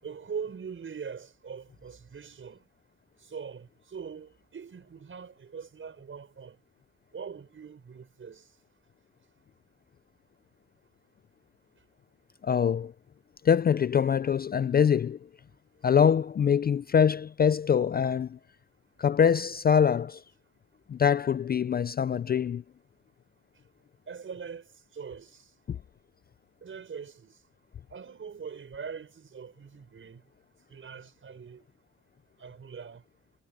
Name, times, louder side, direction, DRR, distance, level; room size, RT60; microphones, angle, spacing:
voice 1, 0.0-2.6 3.2-6.6 7.1-8.4 24.1-25.5 26.6-27.4 27.9-30.3 30.7-31.6 32.4-33.0, right 6 dB, 40° right, 6.6 m, -42 dB
voice 2, 12.4-12.9 13.4-15.2 15.8-18.4 19.0-20.2 20.9-22.6 25.7-25.8, left 7 dB, 30° left, 0.4 m, -24 dB
cardioid pair, 90°, 30 cm